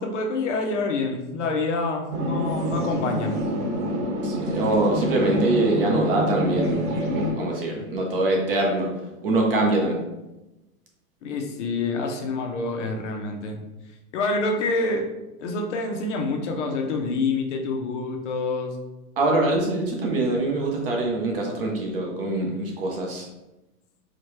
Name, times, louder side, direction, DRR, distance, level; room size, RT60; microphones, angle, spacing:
voice 1, 0.0-3.3 11.2-13.6 14.1-15.1 15.4-18.8, left 3 dB, 55° left, 3 dB, 0.6 m, -27 dB
sound 1, 2.1-7.3, equal, 85° right, 1.3 m, -27 dB
voice 2, 4.2-8.9 9.2-10.0 19.2-23.3, right 2 dB, 40° right, 0 dB, 0.6 m, -24 dB
4.8 x 2.1 x 3.0 m, 1.0 s
supercardioid pair, 175°, 45 cm